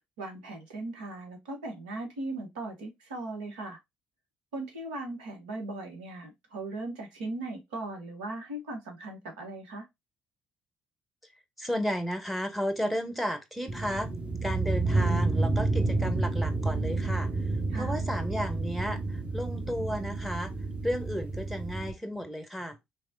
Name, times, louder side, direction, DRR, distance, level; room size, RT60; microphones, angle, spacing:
voice 1, 0.2-3.8 4.5-9.9 17.7-18.0, right 2 dB, 80° right, 1.1 m, -38 dB
voice 2, 11.6-14.1 14.4-17.3 17.7-20.5 20.8-22.8, equal, ahead, 1.1 m, -33 dB
sound 1, 13.7-21.9, right 3 dB, 25° right, 1.2 m, -30 dB
4.0 x 3.2 x 2.7 m
hypercardioid pair, 50°, 5 cm